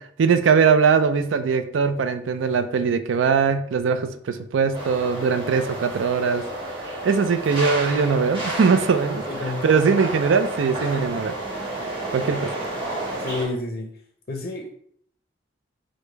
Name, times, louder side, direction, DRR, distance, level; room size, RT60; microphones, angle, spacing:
voice 1, 0.0-6.5 7.0-11.4 12.1-12.5, right 5 dB, 85° right, 10 dB, 0.4 m, -21 dB
sound 1, 4.7-13.4, right 1 dB, 25° right, 1.4 m, -31 dB
voice 2, 9.3-9.6 13.2-13.9 14.3-14.7, left 2 dB, 50° left, 3 dB, 0.5 m, -29 dB
5.0 x 2.1 x 4.5 m, 0.64 s
head